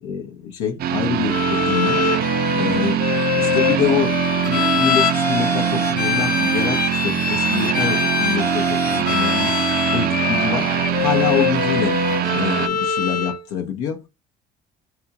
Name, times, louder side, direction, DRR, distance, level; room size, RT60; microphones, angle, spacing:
voice 1, 0.0-2.0 2.5-3.1 3.4-9.6 9.9-10.8 11.0-12.0 12.3-14.0, left 7 dB, 80° left, 0.7 m, -26 dB
sound 1, 0.8-12.7, right 10 dB, 50° right, 0.4 m, -22 dB
Bowed string instrument, 1.3-13.4, left 7 dB, 45° left, 0.8 m, -23 dB
3.0 x 2.4 x 3.4 m
supercardioid pair, 80°, 20 cm